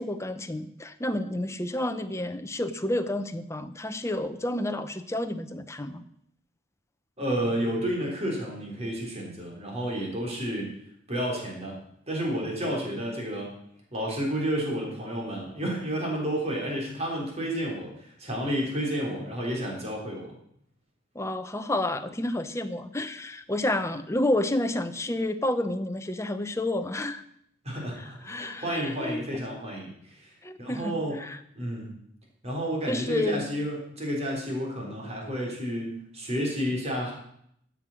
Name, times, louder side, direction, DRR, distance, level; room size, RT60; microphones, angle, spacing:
voice 1, 0.0-6.0 21.1-27.2 28.3-29.2 30.4-31.4 32.9-33.5, left 1 dB, 15° left, 9 dB, 0.7 m, -30 dB
voice 2, 7.2-10.7 11.1-11.8 12.1-13.5 13.9-20.4 27.6-30.3 30.6-31.2 31.5-31.9 32.4-37.1, equal, 30° right, -1 dB, 3.7 m, -31 dB
13.0 x 7.5 x 6.4 m, 0.71 s
head